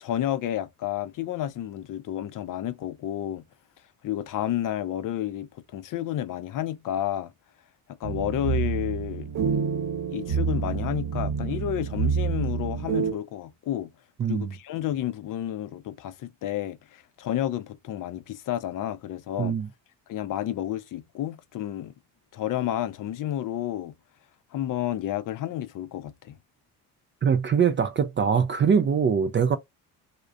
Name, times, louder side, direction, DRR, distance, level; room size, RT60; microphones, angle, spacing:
voice 1, 0.0-3.4 4.0-7.3 8.0-9.3 10.1-13.9 14.3-19.6 20.1-21.9 22.3-23.9 24.5-26.3, left 12 dB, 50° left, 0.4 m, -31 dB
sound 1, 8.0-13.1, right 6 dB, 50° right, 0.8 m, -28 dB
voice 2, 27.2-29.6, right 6 dB, 30° right, 0.3 m, -22 dB
2.3 x 2.1 x 2.5 m
supercardioid pair, 60°, 43 cm